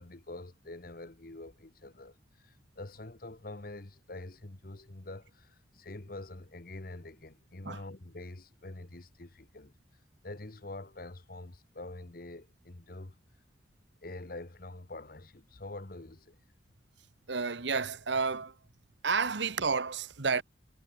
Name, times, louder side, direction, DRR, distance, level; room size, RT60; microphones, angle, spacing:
voice 1, 0.0-9.7 10.2-13.1 14.0-16.4, left 2 dB, 50° left, 1.3 m, -45 dB
voice 2, 17.3-18.6 19.0-20.4, right 5 dB, 75° right, 1.2 m, -30 dB
head